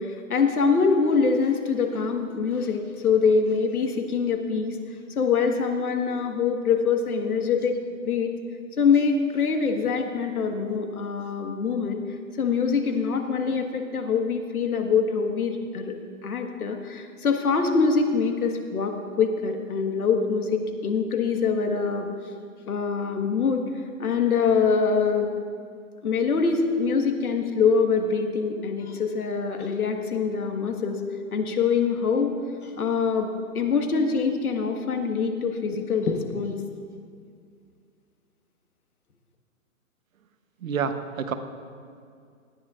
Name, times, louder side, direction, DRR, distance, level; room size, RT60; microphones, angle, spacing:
voice 1, 0.0-4.8 5.2-7.8 8.0-8.3 8.8-12.0 12.4-15.9 16.2-22.1 22.7-23.6 24.0-25.3 26.0-31.0 31.3-32.3 32.6-33.3 33.5-36.6, left 5 dB, 90° left, 4 dB, 1.6 m, -24 dB
voice 2, 40.6-41.3, right 6 dB, 70° right, 8 dB, 1.1 m, -28 dB
18.5 x 12.0 x 2.5 m, 2.2 s
hypercardioid pair, 165°, 43 cm